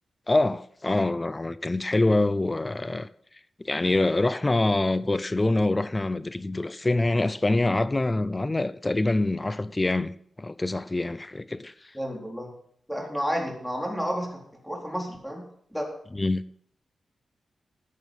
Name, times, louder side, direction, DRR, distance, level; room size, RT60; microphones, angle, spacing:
voice 1, 0.3-3.1 3.6-10.1 10.4-11.7 16.1-16.4, left 2 dB, 25° left, 0.5 m, -25 dB
voice 2, 11.9-12.5 12.9-15.4 15.7-15.9, equal, ahead, 4.2 m, -31 dB
14.5 x 9.1 x 5.6 m
cardioid pair, 85°, 0 cm